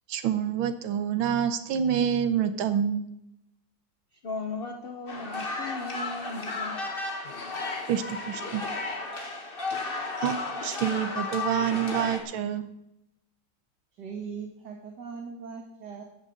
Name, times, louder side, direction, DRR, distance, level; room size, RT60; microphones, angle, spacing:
voice 1, 0.1-3.1 7.9-8.6 10.2-10.3 10.6-12.7, right 8 dB, 85° right, 10 dB, 1.7 m, -27 dB
voice 2, 4.1-6.8 7.2-7.4, left 3 dB, 50° left, 5 dB, 0.7 m, -37 dB
sound 1, 5.1-12.2, left 3 dB, 30° left, 1.6 m, -33 dB
voice 3, 14.0-16.0, right 5 dB, 60° right, 1 dB, 2.1 m, -39 dB
12.0 x 6.4 x 8.5 m, 0.82 s
omnidirectional pair, 2.2 m